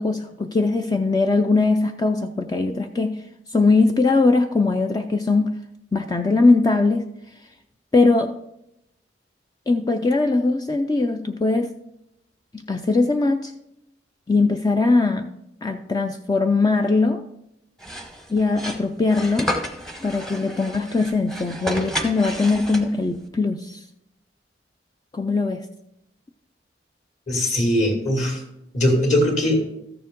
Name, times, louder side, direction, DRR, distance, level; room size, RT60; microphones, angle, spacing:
voice 1, 0.0-3.2 3.5-5.5 5.9-7.1 7.9-8.3 9.7-11.7 12.7-13.5 14.3-15.3 15.6-17.2 18.3-19.5 20.0-23.8 25.1-25.7, left 3 dB, 20° left, 6 dB, 0.4 m, -20 dB
sound 1, 17.8-23.2, left 1 dB, 5° left, 0.9 m, -31 dB
voice 2, 27.3-28.4 28.7-29.6, left 1 dB, 40° left, 1 dB, 2.3 m, -20 dB
13.5 x 7.0 x 3.6 m, 0.83 s
head